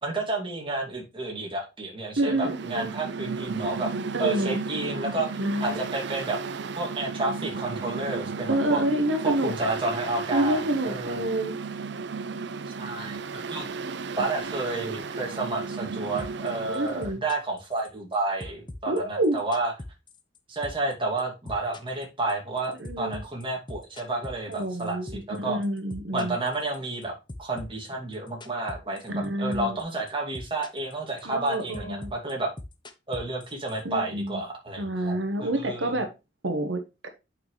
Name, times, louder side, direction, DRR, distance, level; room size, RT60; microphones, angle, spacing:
voice 1, 0.0-3.9 4.2-6.4 6.8-8.8 9.2-11.2 12.7-13.7 14.2-19.7 20.5-25.6 26.1-27.1 27.4-32.5 33.1-36.0, right 2 dB, 30° right, 0 dB, 2.5 m, -31 dB
voice 2, 2.2-2.9 4.1-4.6 5.4-5.8 8.5-9.7 10.3-11.5 13.8-14.3 16.6-17.2 18.9-19.4 22.8-23.2 24.5-26.3 29.1-29.8 31.2-32.1 33.8-34.4 34.8-36.1 36.4-37.1, right 1 dB, 85° right, 7 dB, 1.2 m, -28 dB
Mechanical fan, 2.3-17.1, right 4 dB, 65° right, 0.6 m, -34 dB
sound 1, 16.2-16.5 16.7-18.1 18.4-20.4 20.6-20.9 21.2-25.4 25.6-27.0 27.3-29.3 29.5-29.8 30.1-30.9 31.2-33.8, left 1 dB, 25° left, 0.9 m, -40 dB
8.7 x 5.8 x 3.2 m, 0.27 s
head